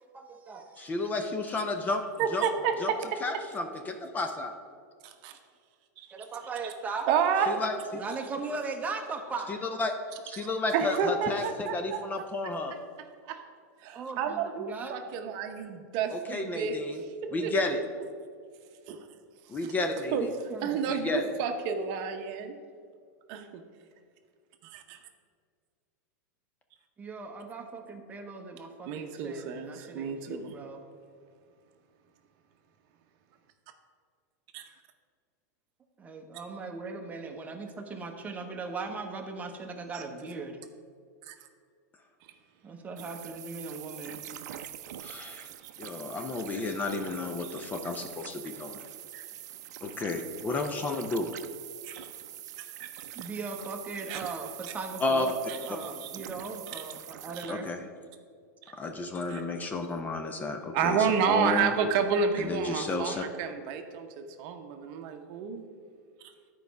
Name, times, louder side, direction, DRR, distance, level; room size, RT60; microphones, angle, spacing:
voice 1, 0.0-0.9 6.1-7.1 7.9-9.6 10.4-10.6 13.9-15.0 17.3-17.5 20.5-20.9 27.0-30.8 36.0-40.6 42.6-44.3 53.1-57.7, right 4 dB, 15° right, 3 dB, 0.9 m, -39 dB
voice 2, 0.8-2.0 2.3-2.5 2.8-2.9 3.2-4.5 7.5-8.0 9.5-9.9 10.2-12.8 16.1-17.0 17.3-17.8 19.5-20.3 20.9-21.3 45.0-45.5 45.8-48.8 49.8-51.3 55.0-55.3 55.7-55.8 57.5-57.8 58.7-61.7 62.4-63.2, left 2 dB, 20° left, 5 dB, 0.5 m, -32 dB
voice 3, 2.2-3.2 5.0-5.4 6.6-6.7 7.1-7.6 10.3-10.5 10.7-12.0 12.4-12.5 13.3-13.4 13.8-16.8 17.4-17.5 18.9-19.0 20.1-20.2 20.6-22.5 23.3-23.6 24.6-25.0 28.9-30.5 34.5-34.7 39.9-40.0 41.3-41.4 47.5-47.6 49.1-49.2 51.8-52.1 52.6-52.9 54.1-54.2 55.5-56.1 56.7-56.8 57.3-57.5 59.3-59.4 60.7-65.6, right 6 dB, 50° right, 6 dB, 0.8 m, -30 dB
sound 1, 43.0-57.5, right 11 dB, 75° right, 0.5 m, -44 dB
10.5 x 4.7 x 5.2 m, 2.1 s
supercardioid pair, 135°, 9 cm